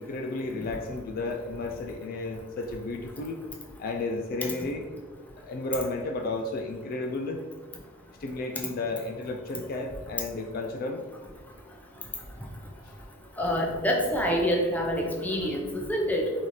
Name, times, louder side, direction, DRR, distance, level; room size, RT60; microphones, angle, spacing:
voice 1, 0.0-3.4 3.8-4.9 5.4-7.4 8.2-11.0 12.9-13.0, left 2 dB, 50° left, 4 dB, 0.3 m, -33 dB
voice 2, 13.4-16.2, equal, 10° left, -1 dB, 0.7 m, -26 dB
4.1 x 3.8 x 3.1 m, 1.4 s
head